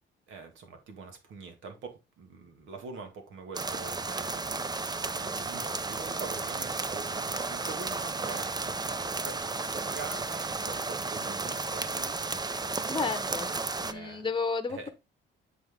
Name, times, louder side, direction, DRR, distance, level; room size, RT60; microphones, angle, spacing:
voice 1, 0.3-13.0 13.8-14.3 14.7-14.9, right 4 dB, 80° right, 2.3 m, -44 dB
sound 1, 3.5-13.9, right 3 dB, 20° right, 0.6 m, -33 dB
voice 2, 12.9-13.5 13.8-14.9, left 4 dB, 25° left, 1.0 m, -32 dB
7.9 x 4.6 x 3.7 m
cardioid pair, 90°, 20 cm